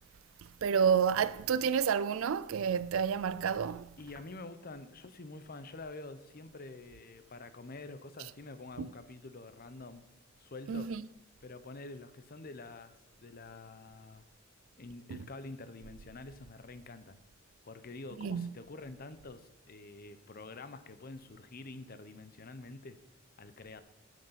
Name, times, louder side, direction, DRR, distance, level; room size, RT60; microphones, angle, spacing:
voice 1, 0.6-3.9 8.8-8.9 10.7-11.0 15.1-15.2 18.2-18.5, right 7 dB, 75° right, 0.4 m, -29 dB
voice 2, 4.0-10.0 10.4-10.9 11.4-14.2 14.8-17.2 17.6-23.0 23.4-23.8, left 3 dB, 45° left, 0.8 m, -47 dB
9.1 x 8.1 x 5.8 m
head